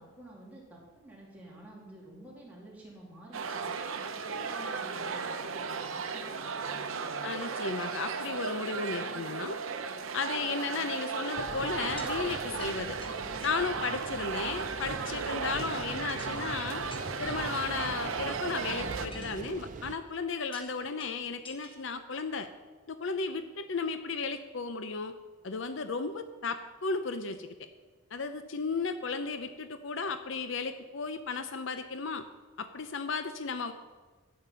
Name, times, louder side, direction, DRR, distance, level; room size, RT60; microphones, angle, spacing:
voice 1, 0.0-3.7 4.1-7.3, right 1 dB, 5° right, -5 dB, 3.1 m, -50 dB
sound 1, 3.3-19.1, right 5 dB, 70° right, 0.8 m, -35 dB
voice 2, 7.2-9.6 10.1-13.0 13.4-16.8 17.2-22.5 22.9-25.1 25.4-27.5 28.1-32.2 32.6-33.7, left 4 dB, 60° left, 10 dB, 0.6 m, -34 dB
sound 2, 11.4-19.9, right 2 dB, 40° right, 0.6 m, -43 dB
sound 3, 11.9-12.1 12.6-12.7 13.0-13.1 13.4-14.1 14.4-14.6 15.0-15.2 15.7-15.8 16.2-16.5 16.9-17.6 18.0-18.8 19.1-20.1 20.5-20.7 21.0-21.8 22.2-22.3, left 1 dB, 25° left, 1.4 m, -50 dB
11.5 x 8.7 x 5.5 m, 1.3 s
head